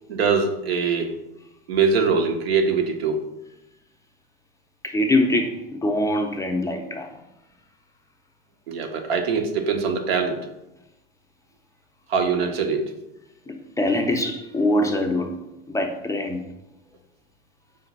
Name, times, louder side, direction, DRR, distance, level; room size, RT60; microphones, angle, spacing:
voice 1, 0.1-1.2 1.7-3.2 8.7-10.4 12.1-12.8, right 5 dB, 85° right, 5 dB, 0.7 m, -22 dB
voice 2, 4.8-7.1 13.5-15.3 15.7-16.4, left 1 dB, 10° left, 3 dB, 0.3 m, -23 dB
5.1 x 2.2 x 3.9 m, 0.91 s
hypercardioid pair, 95°, 30 cm